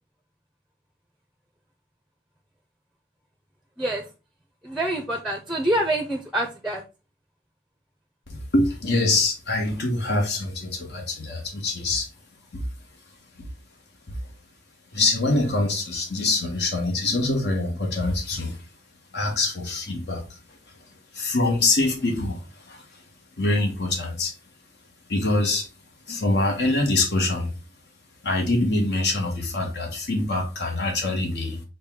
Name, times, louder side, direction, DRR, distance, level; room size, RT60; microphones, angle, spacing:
voice 1, 4.6-6.8, right 1 dB, ahead, 0.5 m, -26 dB
voice 2, 8.3-12.1 12.5-12.6 13.4-13.5 14.9-18.6 19.1-20.4 21.1-23.0 23.4-24.3 25.1-25.7 26.1-27.5 28.2-31.6, left 2 dB, 75° left, 1.1 m, -24 dB
6.5 x 2.2 x 3.6 m
head